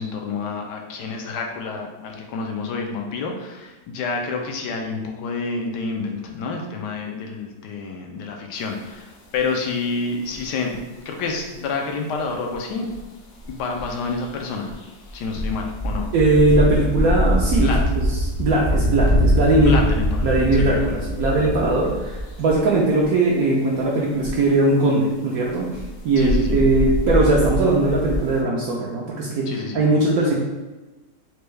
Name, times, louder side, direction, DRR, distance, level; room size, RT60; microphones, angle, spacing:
voice 1, 0.0-10.8 11.1-12.9 13.5-14.7 15.1-16.1 17.6-17.8 19.6-20.3 20.6-20.7 26.2-26.6 29.5-29.8, left 4 dB, 80° left, 2 dB, 1.2 m, -28 dB
sound 1, 9.3-9.4 10.3-10.4 10.7-10.8 12.5-12.6 12.9-13.0 13.4-13.5 13.7-14.3 14.7-22.7 23.0-23.1 24.2-24.4 25.4-28.2, equal, 60° left, 0.8 m, -23 dB
voice 2, 16.1-19.8 20.2-25.7 26.0-30.3, right 2 dB, 70° right, -4 dB, 0.9 m, -19 dB
4.4 x 2.2 x 3.2 m, 1.1 s
omnidirectional pair, 1.9 m